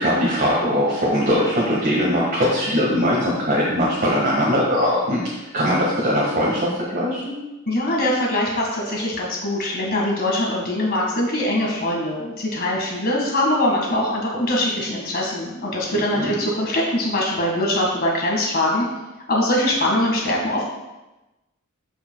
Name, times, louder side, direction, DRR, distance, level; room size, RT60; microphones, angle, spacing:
voice 1, 0.0-7.3 15.9-16.4, equal, 45° right, -6 dB, 1.7 m, -21 dB
voice 2, 7.7-18.9 19.3-20.7, left 1 dB, 45° left, -2 dB, 1.9 m, -22 dB
13.0 x 5.5 x 2.3 m, 1.0 s
head